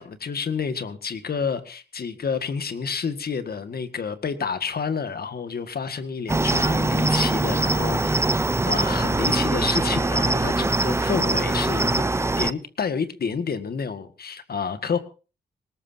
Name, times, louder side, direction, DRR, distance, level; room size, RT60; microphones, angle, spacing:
voice 1, 0.0-8.2 8.7-12.1 12.4-15.0, left 6 dB, 60° left, 10 dB, 1.8 m, -29 dB
Cricket, 6.3-12.5, right 2 dB, 15° right, 0.6 m, -22 dB
20.0 x 18.5 x 2.8 m, 0.34 s
cardioid pair, 70°, 18 cm